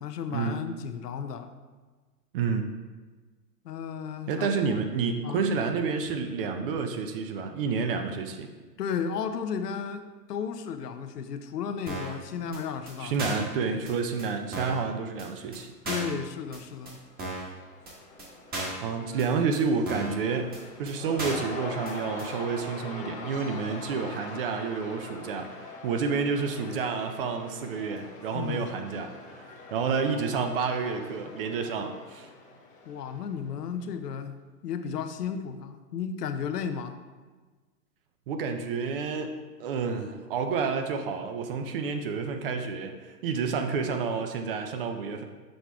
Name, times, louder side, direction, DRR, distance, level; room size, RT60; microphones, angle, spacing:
voice 1, 0.0-1.5 3.6-4.8 5.2-5.4 8.8-13.2 13.6-13.9 15.8-17.0 28.3-28.7 32.9-34.4 34.6-37.0, left 7 dB, 75° left, 9 dB, 0.7 m, -34 dB
voice 2, 2.3-2.7 4.3-8.5 13.0-15.7 18.8-20.5 20.8-32.3 38.3-45.2, right 5 dB, 35° right, 6 dB, 0.5 m, -29 dB
sound 1, 11.9-12.2 12.5-12.6 12.9-13.0 13.2-13.5 13.9-14.0 14.2-14.3 14.5-14.8 15.2-15.3 15.5-15.6 15.8-16.2 16.5-16.6 16.8-16.9 17.2-17.5 17.9-18.0 18.2-18.3 18.5-18.8 19.2-19.3 19.5-19.6 19.9-20.2 20.5-20.6 20.8-20.9 21.2-21.5 21.8-21.9 22.2-22.3, right 1 dB, 20° right, 1.3 m, -35 dB
Cheering / Crowd, 16.7-33.6, left 3 dB, 15° left, 0.5 m, -43 dB
6.4 x 4.7 x 3.4 m, 1.3 s
hypercardioid pair, 120°, 48 cm